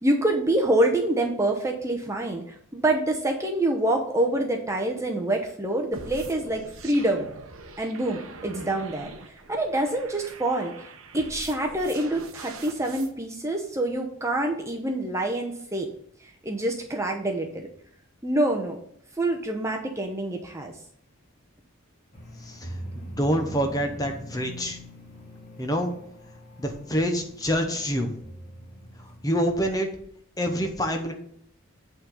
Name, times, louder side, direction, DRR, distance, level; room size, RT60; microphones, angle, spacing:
voice 1, 0.0-2.4 2.7-7.3 7.8-9.1 9.5-10.7 11.1-15.9 16.4-17.7 18.2-18.8 19.2-20.7, right 1 dB, 15° right, 2 dB, 0.8 m, -26 dB
sound 1, 5.9-13.1, right 4 dB, 75° right, 0.9 m, -44 dB
sound 2, 22.1-29.8, equal, 40° left, 2.3 m, -43 dB
voice 2, 22.4-24.8 25.6-25.9 26.6-28.1 29.2-29.9 30.4-31.1, equal, 15° left, 4 dB, 0.9 m, -26 dB
8.7 x 3.9 x 6.5 m, 0.65 s
head